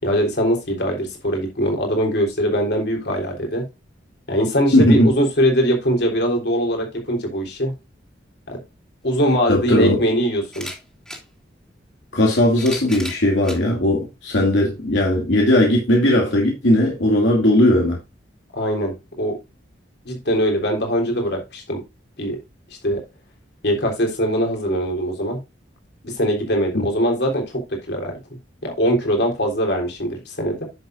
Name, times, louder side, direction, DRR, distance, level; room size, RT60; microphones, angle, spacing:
voice 1, 0.0-3.6 4.3-7.7 8.5-8.6 9.0-10.7 18.5-19.4 20.1-21.8 22.2-22.4 22.8-23.0 23.6-25.4 26.0-27.6 27.9-28.1 28.6-30.6, equal, 65° left, 3.7 m, -21 dB
voice 2, 4.7-5.1 9.5-10.0 12.1-18.0 26.7-26.8, left 1 dB, 85° left, 2.4 m, -17 dB
sound 1, 9.0-9.1 10.4-11.2 12.2-13.6 14.4-14.5 15.7-15.8, equal, 5° left, 2.5 m, -35 dB
10.5 x 7.1 x 2.6 m
head